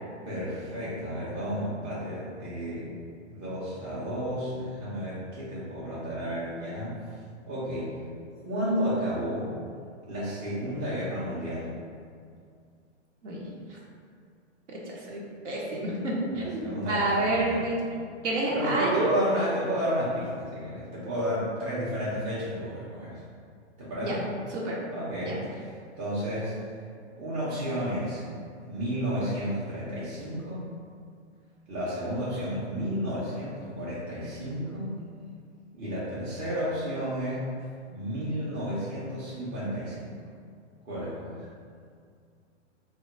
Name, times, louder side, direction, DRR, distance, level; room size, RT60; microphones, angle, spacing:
voice 1, 0.3-2.9 3.3-7.0 7.5-8.0 8.4-9.5 10.1-11.7 16.4-17.6 18.5-23.2 23.8-24.3 24.9-26.6 27.2-28.2 28.7-30.7 31.7-35.0 35.7-37.5 37.9-40.1 40.8-41.5, equal, 20° right, -10 dB, 0.4 m, -32 dB
voice 2, 15.1-17.7 18.2-19.2 24.0-24.2 24.5-24.8 25.2-25.4, right 2 dB, 80° right, -4 dB, 0.8 m, -28 dB
2.2 x 2.1 x 3.8 m, 2.3 s
hypercardioid pair, 135°, 36 cm